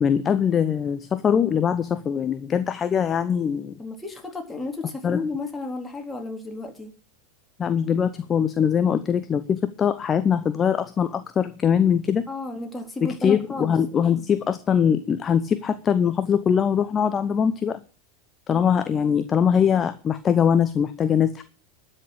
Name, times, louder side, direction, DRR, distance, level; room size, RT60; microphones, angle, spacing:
voice 1, 0.0-3.7 5.0-5.2 7.6-12.2 13.0-17.8 18.5-21.4, left 7 dB, 25° left, 12 dB, 0.8 m, -22 dB
voice 2, 3.8-6.9 12.3-13.7, left 3 dB, 10° left, 2 dB, 3.7 m, -33 dB
13.0 x 6.7 x 8.7 m, 0.37 s
figure-of-eight pair, 85°, 0 cm